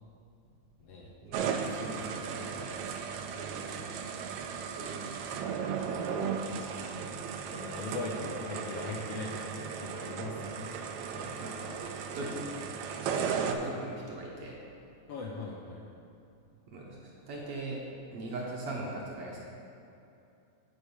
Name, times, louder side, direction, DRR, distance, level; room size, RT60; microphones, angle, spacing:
voice 1, 1.2-2.7 3.1-4.0 4.6-7.2 11.1-11.8 12.1-12.5 13.1-14.6 16.7-19.4, right 2 dB, 65° right, -3 dB, 1.7 m, -41 dB
sound 1, 1.3-13.5, right 6 dB, 80° right, 1.8 m, -36 dB
voice 2, 7.5-10.8 15.1-15.8, left 3 dB, 70° left, -2 dB, 1.5 m, -39 dB
8.0 x 4.7 x 7.1 m, 2.7 s
omnidirectional pair, 3.4 m